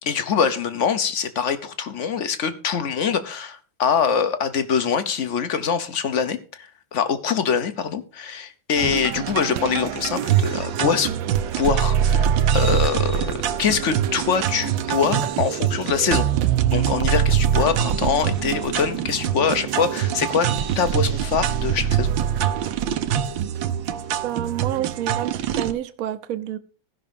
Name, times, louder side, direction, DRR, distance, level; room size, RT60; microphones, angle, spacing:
voice 1, 0.0-11.1 11.6-16.2 16.7-20.5 20.7-22.1, left 6 dB, 45° left, 1.1 m, -24 dB
sound 1, 8.8-25.7, right 9 dB, 80° right, 1.5 m, -23 dB
voice 2, 24.2-26.6, right 12 dB, 55° right, 1.0 m, -28 dB
15.0 x 5.8 x 5.2 m
omnidirectional pair, 2.1 m